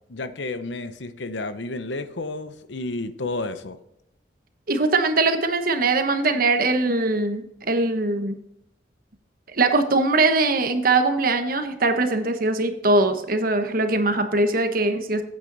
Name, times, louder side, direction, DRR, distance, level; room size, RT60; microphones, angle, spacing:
voice 1, 0.1-3.8, left 2 dB, 85° left, 0.8 m, -31 dB
voice 2, 4.7-8.4 9.5-15.2, right 3 dB, 55° right, 1.1 m, -21 dB
8.8 x 8.8 x 4.0 m
head